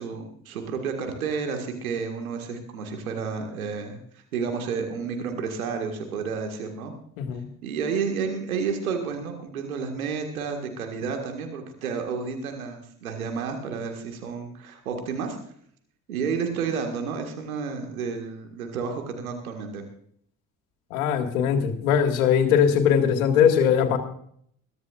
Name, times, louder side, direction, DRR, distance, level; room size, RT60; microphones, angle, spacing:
voice 1, 0.0-6.9 7.6-15.4 16.1-19.9, right 5 dB, 80° right, 4 dB, 1.9 m, -31 dB
voice 2, 20.9-24.0, left 8 dB, 75° left, 6 dB, 2.0 m, -20 dB
22.0 x 13.5 x 2.5 m, 0.63 s
figure-of-eight pair, 45°, 42 cm